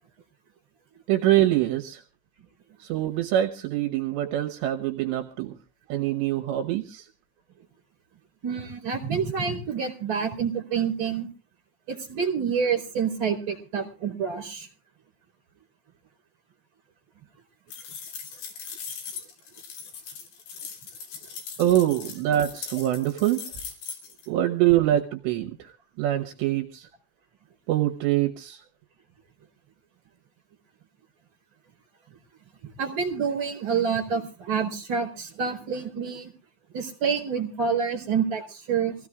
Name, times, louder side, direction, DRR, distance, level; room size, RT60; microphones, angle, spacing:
voice 1, 1.1-2.0 2.8-5.6 5.9-7.1 21.6-23.5 24.3-25.7 26.0-26.9 27.7-28.6, right 13 dB, 75° right, 5 dB, 3.1 m, -24 dB
voice 2, 8.4-11.3 11.9-14.7 32.6-36.3 36.7-39.0, right 6 dB, 30° right, 2 dB, 4.7 m, -28 dB
sound 1, 17.7-24.3, left 6 dB, 65° left, 5.1 m, -39 dB
25.5 x 16.5 x 2.4 m, 0.35 s
omnidirectional pair, 5.2 m